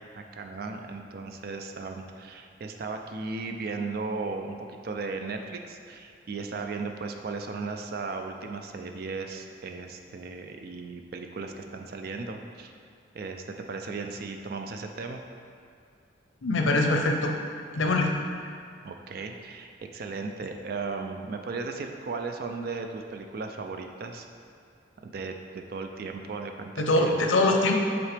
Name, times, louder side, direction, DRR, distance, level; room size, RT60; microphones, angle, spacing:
voice 1, 0.1-12.7 13.1-15.2 18.8-24.3 25.0-27.2, right 4 dB, 50° right, 5 dB, 0.4 m, -36 dB
voice 2, 16.4-17.3 17.7-18.1 26.8-27.8, left 2 dB, 90° left, 2 dB, 0.6 m, -23 dB
7.3 x 4.0 x 3.3 m, 2.3 s
head